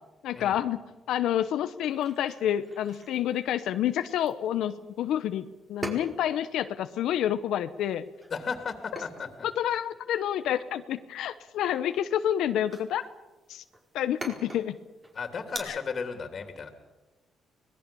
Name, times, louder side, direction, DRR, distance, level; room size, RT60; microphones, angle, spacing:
voice 1, 0.2-0.8 1.1-8.0 9.6-13.0 13.5-13.6 13.9-14.8 15.6-15.8, left 11 dB, 80° left, 10 dB, 0.9 m, -28 dB
sound 1, 1.8-15.6, right 2 dB, 30° right, 4.8 m, -46 dB
voice 2, 8.3-9.3 15.1-16.7, left 5 dB, 50° left, 6 dB, 3.0 m, -34 dB
25.0 x 19.5 x 7.0 m, 1.1 s
cardioid pair, 90°, 0 cm